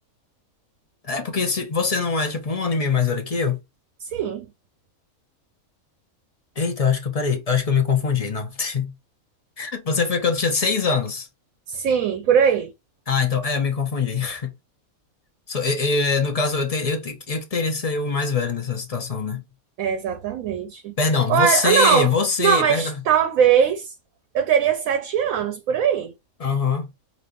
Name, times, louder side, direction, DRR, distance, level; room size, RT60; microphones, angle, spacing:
voice 1, 1.0-3.6 6.6-8.9 9.6-11.3 13.1-14.5 15.5-19.4 21.0-23.0 26.4-26.9, left 5 dB, 35° left, 0.6 m, -23 dB
voice 2, 4.0-4.5 11.7-12.7 19.8-20.9 21.3-22.1 22.4-23.9 24.3-26.1, right 8 dB, 70° right, 1.0 m, -20 dB
5.2 x 2.7 x 2.5 m
omnidirectional pair, 1.5 m